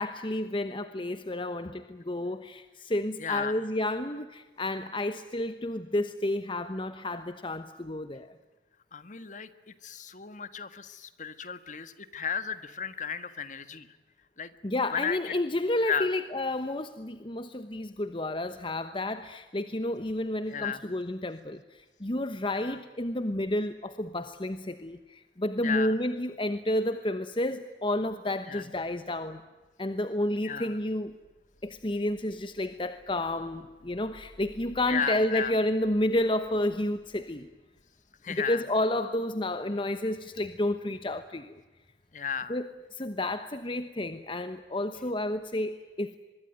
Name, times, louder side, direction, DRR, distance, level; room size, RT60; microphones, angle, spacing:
voice 1, 0.0-8.3 14.6-29.4 29.8-31.1 31.6-37.5 38.3-41.5 42.5-46.2, left 1 dB, 30° left, 10 dB, 1.1 m, -31 dB
voice 2, 3.2-3.6 8.9-13.9 14.4-14.5 14.9-15.3 15.8-16.1 20.5-20.8 22.5-22.8 25.6-25.9 28.5-28.6 30.4-30.7 34.9-35.5 38.2-38.6 42.1-42.6, left 7 dB, 45° left, 12 dB, 1.6 m, -34 dB
25.0 x 22.0 x 9.2 m, 1.2 s
head